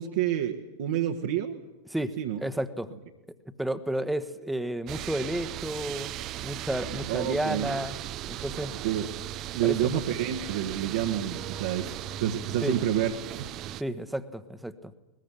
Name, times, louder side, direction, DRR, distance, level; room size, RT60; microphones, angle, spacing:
voice 1, 0.0-1.6 2.2-2.4 7.1-7.7 8.8-9.1 9.5-13.5, right 11 dB, 55° right, 2 dB, 1.6 m, -29 dB
voice 2, 1.9-2.9 3.6-6.1 6.4-8.0 8.3-8.8 9.6-10.0 12.6-12.8 13.8-14.9, right 1 dB, 5° right, 12 dB, 1.3 m, -32 dB
sound 1, 4.9-13.8, right 13 dB, 35° right, 0.8 m, -37 dB
22.0 x 21.5 x 9.8 m, 1.1 s
figure-of-eight pair, 90°, 0 cm